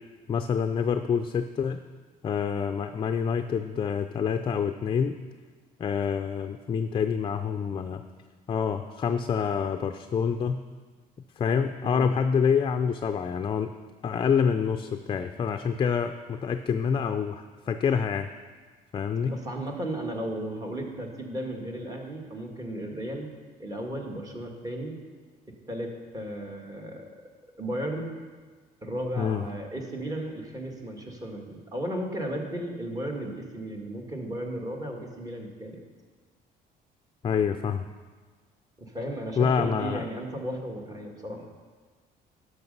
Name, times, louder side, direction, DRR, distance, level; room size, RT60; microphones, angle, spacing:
voice 1, 0.3-1.8 2.2-5.2 5.8-8.0 8.5-10.6 11.4-13.7 14.0-18.3 18.9-19.4 29.2-29.4 37.2-37.9 39.4-40.0, left 6 dB, 30° left, 7 dB, 0.4 m, -27 dB
voice 2, 19.3-23.3 23.6-25.0 25.7-27.1 27.6-28.1 28.8-35.8 38.8-41.5, right 1 dB, 20° right, 1 dB, 1.7 m, -35 dB
11.0 x 6.5 x 5.4 m, 1.4 s
cardioid pair, 110°, 17 cm